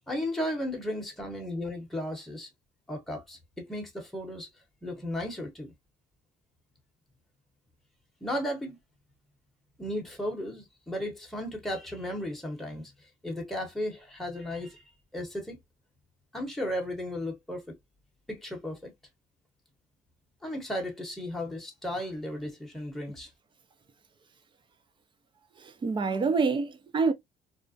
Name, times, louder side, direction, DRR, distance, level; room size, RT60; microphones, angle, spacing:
voice 1, 0.1-2.5 2.9-4.5 4.8-5.7 8.2-8.8 9.8-12.9 13.2-14.8 15.1-15.6 16.3-17.8 18.3-18.9 20.4-23.3, left 1 dB, ahead, 0.9 m, -35 dB
voice 2, 25.6-27.1, right 4 dB, 30° right, 0.5 m, -27 dB
2.4 x 2.0 x 2.5 m
cardioid pair, 110°, 17 cm